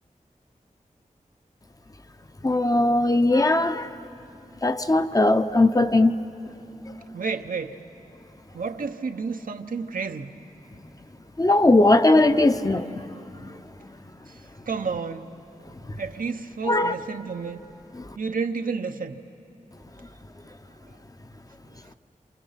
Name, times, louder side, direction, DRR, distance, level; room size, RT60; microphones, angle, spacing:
voice 1, 2.4-3.9 4.6-6.2 11.4-13.1 13.4-13.6 16.7-16.9, left 2 dB, 25° left, 0.7 m, -19 dB
voice 2, 7.1-7.8 8.5-10.3 14.3-15.3 16.0-17.6 18.2-19.2 20.8-21.0, right 5 dB, 90° right, 0.9 m, -31 dB
28.0 x 28.0 x 5.8 m
wide cardioid pair, 85°, 14 cm